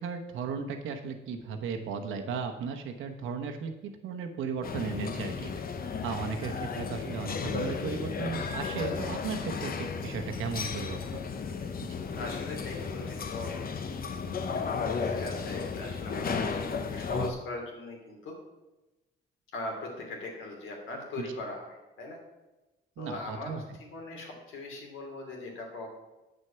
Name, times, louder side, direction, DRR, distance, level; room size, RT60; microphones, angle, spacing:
voice 1, 0.0-5.5 6.0-11.2 21.2-21.3 23.0-23.6, right 5 dB, 85° right, 5 dB, 1.1 m, -36 dB
sound 1, 4.6-17.3, left 5 dB, 50° left, 0.9 m, -34 dB
voice 2, 12.2-13.5 14.4-18.3 19.5-22.2 23.0-25.9, left 2 dB, 80° left, 1 dB, 2.7 m, -40 dB
8.3 x 6.5 x 5.7 m, 1.1 s
cardioid pair, 90°, 20 cm